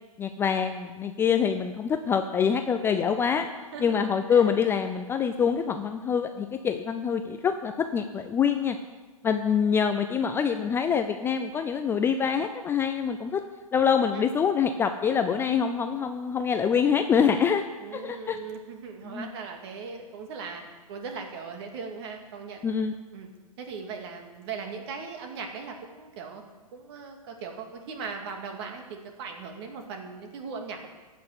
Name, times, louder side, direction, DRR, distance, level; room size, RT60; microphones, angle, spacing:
voice 1, 0.2-3.5 3.8-8.8 9.2-13.4 13.7-17.6 17.9-18.4 19.0-19.3 22.6-22.9, left 7 dB, 10° left, 7 dB, 0.5 m, -25 dB
voice 2, 3.7-4.5 14.1-14.3 17.8-20.6 20.9-22.7 23.1-23.3 23.6-26.4 26.7-30.9, right 5 dB, 45° right, 4 dB, 2.3 m, -39 dB
15.0 x 6.0 x 8.0 m, 1.3 s
figure-of-eight pair, 120°, 19 cm